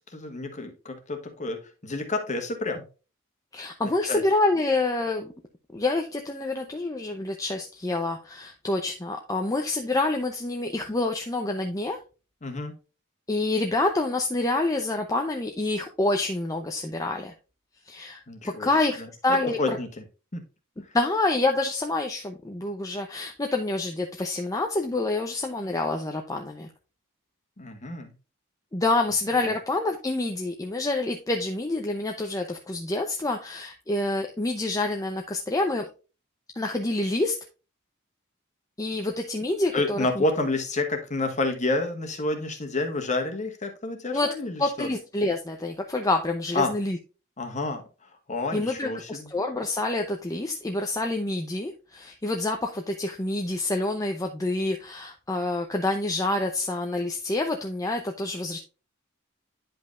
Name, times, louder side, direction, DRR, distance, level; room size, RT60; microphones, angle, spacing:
voice 1, 0.1-2.8 4.1-4.2 12.4-12.7 18.3-18.7 19.0-20.0 20.3-20.4 27.6-28.1 29.4-29.5 39.7-44.9 46.5-46.7 47.4-47.8 48.3-49.3, left 2 dB, 35° left, 5 dB, 1.5 m, -29 dB
voice 2, 3.5-5.3 5.7-12.0 13.3-17.3 17.9-19.8 20.9-26.7 28.7-35.8 36.6-37.3 38.8-40.2 44.1-44.3 44.6-47.0 48.5-58.6, left 2 dB, 15° left, 3 dB, 0.6 m, -27 dB
10.5 x 5.3 x 2.4 m, 0.32 s
head